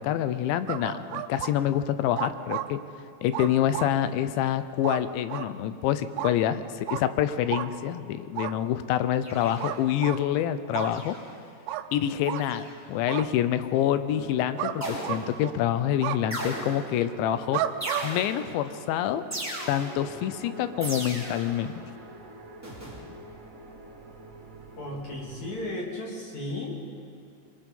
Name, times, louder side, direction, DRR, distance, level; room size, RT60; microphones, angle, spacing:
voice 1, 0.0-2.8 3.2-11.2 11.9-17.6 18.0-19.2 19.7-21.7, left 11 dB, 85° left, 12 dB, 3.1 m, -27 dB
sound 1, 0.7-1.5 2.2-2.7 3.3-3.9 4.8-5.0 5.3-5.5 6.2-6.3 6.9-7.0 7.5-7.7 8.4-8.5 9.6-10.2 10.7-10.9 11.7-11.9 12.3-12.4 13.1-13.3 14.6-14.8 15.0-15.5 16.0-16.2 17.5-18.0, right 12 dB, 80° right, 2.8 m, -31 dB
sound 2, 9.2-9.9 10.7-11.4 12.3-12.8 14.8-15.5 16.3-17.0 17.8-18.6 19.3-20.1 20.8-21.6 22.6-23.1, right 1 dB, 5° right, 3.0 m, -37 dB
sound 3, 14.0-25.7, right 3 dB, 60° right, 0.8 m, -46 dB
voice 2, 24.8-26.7, left 1 dB, 45° left, -2 dB, 3.5 m, -34 dB
23.5 x 23.0 x 5.5 m, 2.5 s
omnidirectional pair, 5.1 m